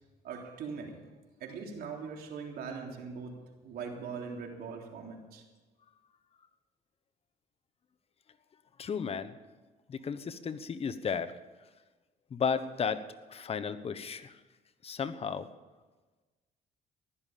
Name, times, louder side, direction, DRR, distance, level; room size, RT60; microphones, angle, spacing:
voice 1, 0.2-1.0 1.4-3.3 3.6-5.4, right 5 dB, 65° right, 1 dB, 3.4 m, -41 dB
voice 2, 8.8-9.3 9.9-11.3 12.3-13.0 13.3-14.3 14.8-15.5, left 6 dB, 35° left, 10 dB, 1.0 m, -33 dB
15.5 x 11.5 x 7.5 m, 1.3 s
cardioid pair, 110°, 17 cm